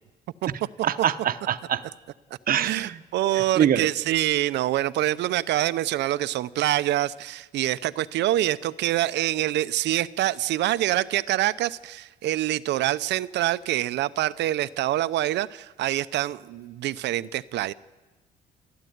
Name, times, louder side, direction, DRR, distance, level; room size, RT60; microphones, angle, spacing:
voice 1, 0.8-1.8 2.5-3.0 3.3-3.9, right 9 dB, 55° right, 11 dB, 0.9 m, -24 dB
voice 2, 2.6-17.7, right 14 dB, 80° right, 15 dB, 0.7 m, -25 dB
29.5 x 12.5 x 9.4 m, 1.2 s
cardioid pair, 120°, 18 cm